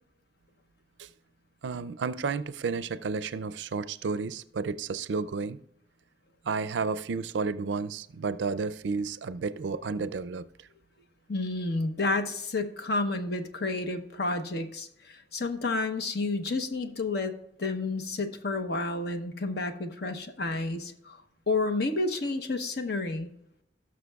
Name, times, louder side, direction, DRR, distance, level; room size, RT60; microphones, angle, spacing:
voice 1, 1.6-5.6 6.4-10.5, right 4 dB, 90° right, 0.4 m, -32 dB
voice 2, 11.3-17.3 17.6-21.2 21.5-23.3, left 3 dB, 65° left, 0.9 m, -30 dB
17.5 x 6.4 x 2.3 m
head